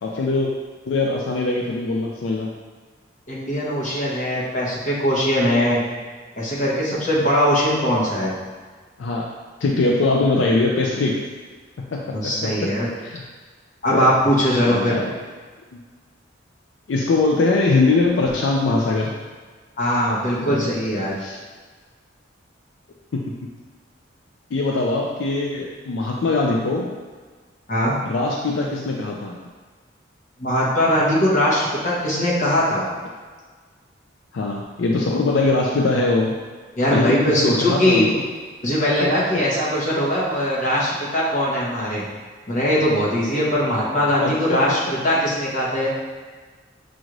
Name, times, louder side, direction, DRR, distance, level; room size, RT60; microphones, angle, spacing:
voice 1, 0.0-0.5 0.9-2.5 9.0-9.3 9.6-11.3 11.8-12.7 13.0-13.2 13.9-14.0 14.7-15.1 15.7-15.8 16.9-19.1 20.4-21.4 23.1-23.2 24.5-26.9 28.0-29.3 34.3-36.4 36.9-38.2 39.0-39.4 40.6-40.7 44.2-44.8, left 3 dB, 80° left, -1 dB, 0.4 m, -22 dB
voice 2, 3.3-5.8 6.4-8.3 12.1-12.9 13.8-15.0 19.8-21.1 27.7-28.0 30.4-32.8 36.8-38.0 38.6-42.0 42.5-45.9, equal, 45° left, -7 dB, 1.2 m, -20 dB
6.2 x 2.5 x 3.1 m, 1.5 s
head